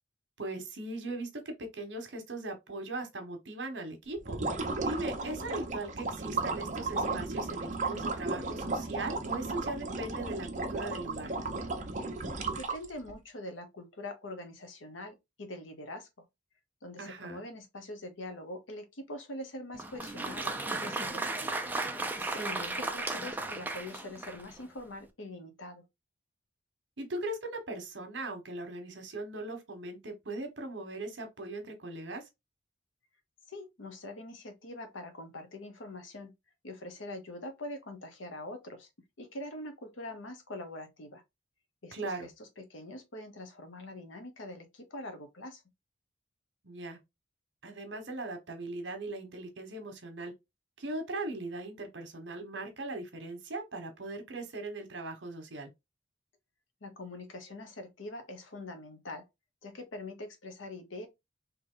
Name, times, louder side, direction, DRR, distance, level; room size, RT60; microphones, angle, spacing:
voice 1, 0.4-4.4 4.8-11.3 17.0-17.4 22.2-22.6 27.0-32.3 41.9-42.3 46.6-47.0 47.6-50.3 50.8-55.7, right 2 dB, 70° right, 1.2 m, -39 dB
sound 1, 4.2-13.1, right 3 dB, 40° right, 0.8 m, -34 dB
voice 2, 12.6-16.2 16.8-21.3 22.3-25.8 33.5-36.3 36.6-38.9 39.2-41.2 41.8-45.6 56.8-59.3 59.6-61.1, left 1 dB, 90° left, 1.0 m, -44 dB
Applause, 19.7-24.6, right 2 dB, 10° right, 0.5 m, -35 dB
3.6 x 2.9 x 3.8 m
head